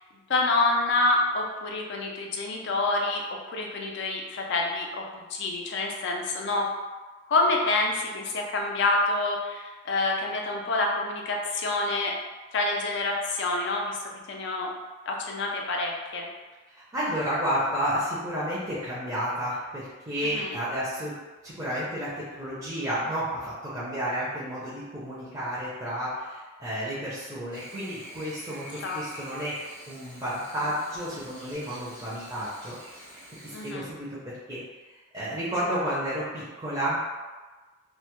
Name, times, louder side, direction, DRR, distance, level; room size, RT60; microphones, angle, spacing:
voice 1, 0.3-3.2 3.5-6.7 7.3-12.1 12.5-14.7 15.1-16.2 20.3-20.5 28.8-29.0 33.5-33.8, left 2 dB, 60° left, 1 dB, 0.4 m, -27 dB
voice 2, 16.8-21.1 21.4-29.6 29.9-32.8 33.1-33.2 33.6-34.2 34.5-34.6 35.1-37.0, equal, 15° right, -9 dB, 0.5 m, -31 dB
Chirp tweet / Buzz, 27.5-33.7, right 1 dB, 90° right, 0.7 m, -46 dB
2.1 x 2.0 x 2.9 m, 1.3 s
head